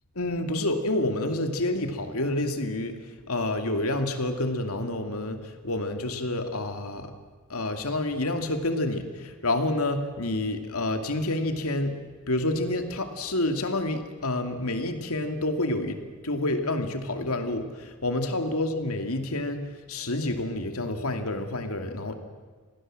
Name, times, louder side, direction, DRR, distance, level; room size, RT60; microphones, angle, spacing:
voice 1, 0.2-3.0 3.3-7.1 7.5-12.0 12.2-19.6 19.9-22.2, left 2 dB, 85° left, 6 dB, 2.5 m, -28 dB
27.0 x 18.5 x 7.7 m, 1.5 s
head